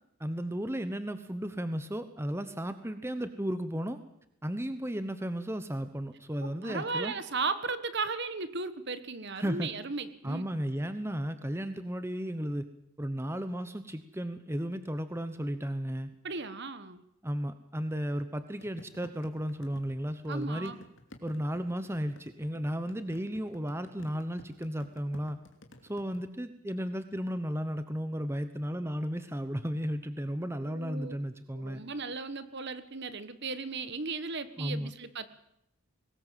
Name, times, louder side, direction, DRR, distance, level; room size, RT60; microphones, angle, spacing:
voice 1, 0.2-4.0 4.4-7.1 9.4-9.7 10.2-12.7 13.0-16.1 17.2-20.7 21.2-25.4 25.8-31.8 34.6-34.9, equal, 10° right, 10 dB, 1.0 m, -34 dB
voice 2, 6.4-10.5 16.2-17.0 20.3-20.8 30.6-31.1 31.5-35.3, right 4 dB, 50° right, 12 dB, 1.4 m, -36 dB
sound 1, 18.6-26.2, left 1 dB, 55° left, 2.8 m, -52 dB
23.0 x 19.5 x 7.6 m, 0.77 s
head